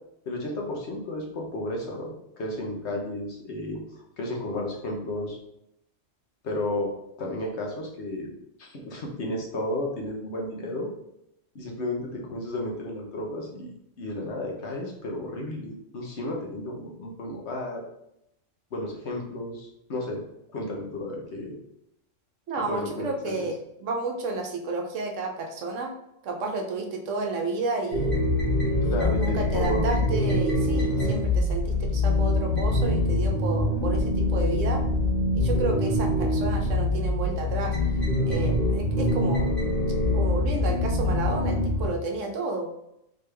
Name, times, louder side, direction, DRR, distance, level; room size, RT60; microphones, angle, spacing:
voice 1, 0.3-5.4 6.4-6.9 7.2-8.3 8.6-10.9 11.5-17.8 18.7-20.2 20.5-21.6 22.7-23.5 28.8-29.9, left 1 dB, 60° left, 0 dB, 1.1 m, -33 dB
voice 2, 22.5-25.9 26.2-28.2 28.8-34.8 35.3-37.8 38.2-39.5 40.1-42.7, right 3 dB, 70° right, 2 dB, 1.1 m, -31 dB
sound 1, 27.9-41.9, left 1 dB, 45° left, 1.6 m, -24 dB
3.8 x 3.3 x 3.3 m, 0.80 s
omnidirectional pair, 1.3 m